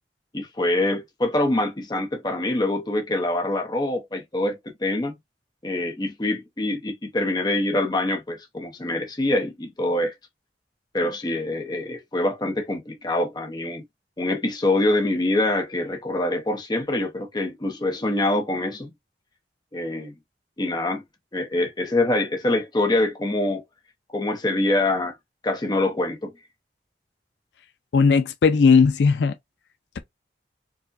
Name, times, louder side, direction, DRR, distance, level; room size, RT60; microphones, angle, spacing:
voice 1, 0.3-5.1 5.6-10.1 10.9-13.8 14.2-18.9 19.7-20.1 20.6-21.0 21.3-23.6 24.1-25.1 25.4-26.3, left 1 dB, 25° left, 0.7 m, -25 dB
voice 2, 27.9-29.3, left 5 dB, 75° left, 0.4 m, -17 dB
4.6 x 2.1 x 2.5 m
head